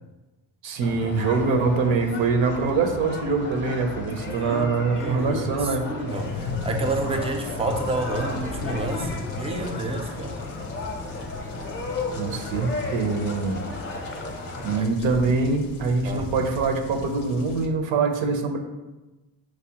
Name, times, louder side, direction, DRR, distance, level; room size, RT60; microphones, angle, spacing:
voice 1, 0.6-5.9 12.1-13.7 14.6-18.6, right 4 dB, 75° right, 5 dB, 0.6 m, -24 dB
sound 1, 0.8-14.8, left 2 dB, 25° left, 0.6 m, -34 dB
voice 2, 4.4-10.4 14.7-14.9 16.0-16.3, right 2 dB, 15° right, 4 dB, 0.3 m, -29 dB
sound 2, 6.1-17.7, left 4 dB, 90° left, 0.5 m, -37 dB
4.7 x 2.1 x 2.8 m, 1.1 s
cardioid pair, 75°, 46 cm